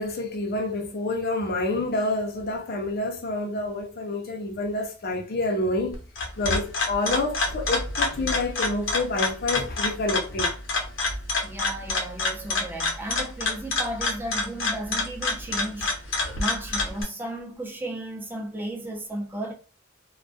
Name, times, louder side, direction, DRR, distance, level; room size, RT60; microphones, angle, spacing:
voice 1, 0.0-6.0 6.4-10.5 16.3-16.4, left 2 dB, 50° left, 0.6 m, -28 dB
sound 1, 5.9-17.0, left 3 dB, 90° left, 0.8 m, -28 dB
voice 2, 11.4-15.9 16.4-19.5, right 1 dB, 10° right, 0.6 m, -34 dB
2.3 x 2.2 x 2.4 m
head